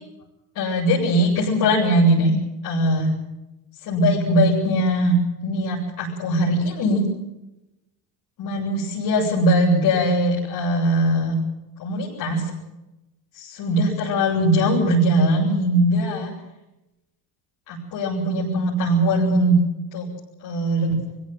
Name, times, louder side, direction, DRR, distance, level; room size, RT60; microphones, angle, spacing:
voice 1, 0.5-2.3 2.6-3.1 3.8-7.0 8.4-11.3 11.8-12.5 13.3-16.3 17.7-19.6 19.9-20.1 20.4-20.9, right 1 dB, 55° left, -6 dB, 7.9 m, -20 dB
23.5 x 16.5 x 9.3 m, 0.97 s
cardioid pair, 125°, 42 cm